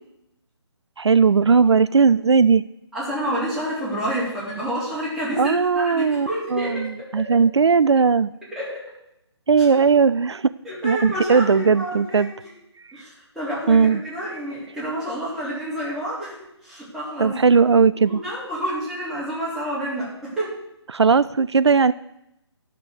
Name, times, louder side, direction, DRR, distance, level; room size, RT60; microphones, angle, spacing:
voice 1, 1.0-2.6 5.4-6.9 7.1-8.3 9.5-10.4 10.8-12.3 13.7-14.0 17.2-18.2 20.9-21.9, right 5 dB, 75° right, 15 dB, 0.4 m, -17 dB
voice 2, 2.9-7.4 8.5-8.8 10.6-12.5 12.9-17.4 17.7-20.6, right 1 dB, ahead, -10 dB, 3.9 m, -29 dB
12.0 x 6.6 x 6.7 m, 0.84 s
figure-of-eight pair, 145°, 14 cm